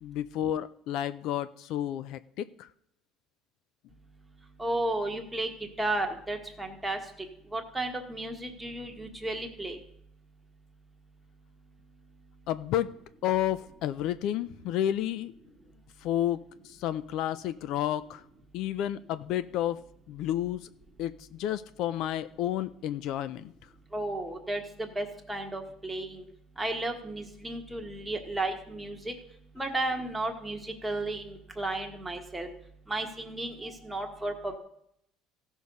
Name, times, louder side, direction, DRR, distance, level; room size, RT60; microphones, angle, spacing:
voice 1, 0.0-2.7 12.5-12.9 13.2-15.3 16.0-18.2 18.5-19.8 20.1-20.7 21.0-23.5, left 11 dB, 60° left, 15 dB, 0.4 m, -31 dB
voice 2, 4.6-5.5 5.8-7.0 7.5-9.8 23.9-26.2 26.6-29.1 29.6-32.5 32.9-34.6, right 2 dB, 5° right, 3 dB, 1.5 m, -33 dB
15.5 x 6.3 x 5.4 m, 0.73 s
cardioid pair, 140°, 0 cm